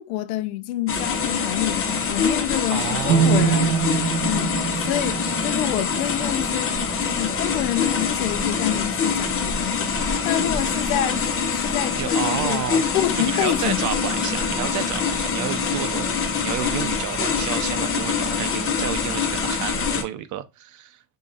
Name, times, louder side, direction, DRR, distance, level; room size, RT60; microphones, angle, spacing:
voice 1, 0.0-3.7 4.2-12.6 12.9-13.9, left 14 dB, 85° left, 0.7 m, -28 dB
sound 1, 0.9-20.0, left 5 dB, 30° left, 1.1 m, -24 dB
voice 2, 2.7-3.8 10.4-10.6 12.0-12.9 13.2-21.0, right 12 dB, 45° right, 0.7 m, -31 dB
sound 2, 3.1-7.0, right 6 dB, 60° right, 1.1 m, -24 dB
6.5 x 2.9 x 2.5 m
supercardioid pair, 110°, 42 cm